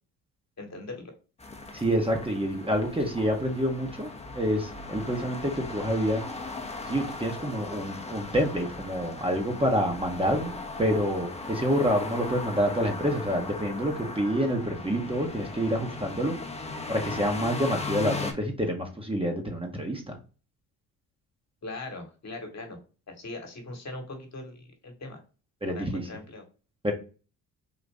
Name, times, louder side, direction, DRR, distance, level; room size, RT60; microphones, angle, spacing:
voice 1, 0.6-1.1 21.6-22.8 23.1-25.2 25.7-26.4, left 2 dB, 40° left, 4 dB, 1.5 m, -40 dB
sound 1, 1.4-18.3, left 3 dB, 15° left, 0.9 m, -38 dB
voice 2, 1.7-4.1 4.3-6.2 6.9-10.5 10.8-16.3 16.9-20.1 25.6-26.1 26.8-26.9, equal, 15° right, 2 dB, 1.0 m, -27 dB
4.0 x 2.5 x 3.4 m, 0.36 s
supercardioid pair, 65°, 41 cm